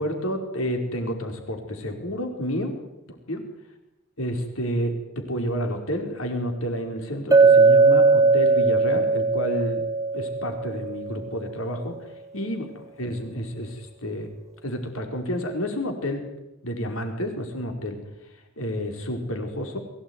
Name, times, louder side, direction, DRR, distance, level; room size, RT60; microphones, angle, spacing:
voice 1, 0.0-2.8 3.3-3.4 4.2-9.8 10.1-11.9 12.3-14.3 14.6-16.2 16.6-18.0 18.6-19.8, equal, 70° left, 4 dB, 5.0 m, -30 dB
Chink clink, 7.3-11.3, right 4 dB, 15° right, 1.9 m, -19 dB
23.5 x 17.0 x 9.8 m, 0.97 s
head